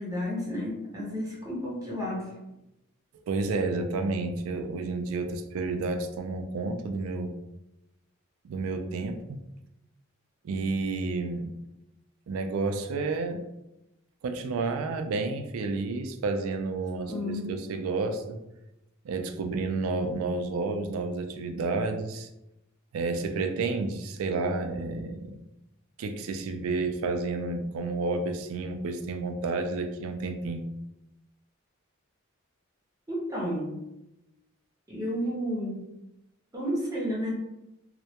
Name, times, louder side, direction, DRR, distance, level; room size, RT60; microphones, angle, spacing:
voice 1, 0.0-2.3 17.1-17.6 33.1-33.8 34.9-35.9 36.5-37.3, equal, 15° right, -5 dB, 0.5 m, -32 dB
voice 2, 3.3-7.3 8.4-9.4 10.4-11.5 12.3-13.4 14.2-18.4 19.0-22.3 22.9-25.3 26.0-30.7, right 3 dB, 90° right, 7 dB, 0.3 m, -30 dB
2.2 x 2.1 x 2.7 m, 0.90 s
head